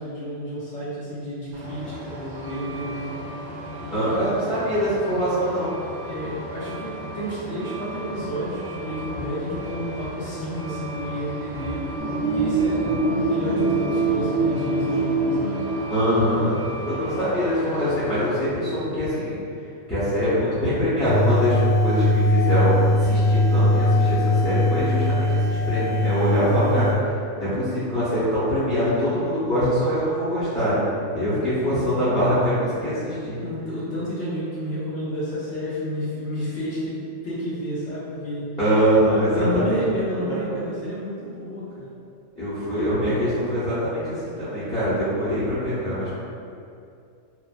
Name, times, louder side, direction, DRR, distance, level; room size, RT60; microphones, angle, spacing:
voice 1, 0.0-3.1 3.8-4.4 6.0-15.6 17.0-17.2 31.1-32.0 33.4-38.5 39.3-41.9, equal, 80° left, -11 dB, 1.4 m, -31 dB
Truck, 1.5-18.3, right 1 dB, 80° right, 1.0 m, -36 dB
voice 2, 3.9-5.7 15.9-16.6 16.9-19.4 19.9-30.8 31.1-33.4 38.6-39.8 40.3-40.5 42.4-46.1, equal, 5° left, -17 dB, 0.7 m, -23 dB
sound 1, 12.0-16.4, right 3 dB, 45° right, 1.0 m, -24 dB
sound 2, 21.0-26.9, left 1 dB, 60° left, 0.7 m, -20 dB
3.2 x 2.0 x 2.4 m, 2.5 s
omnidirectional pair, 1.3 m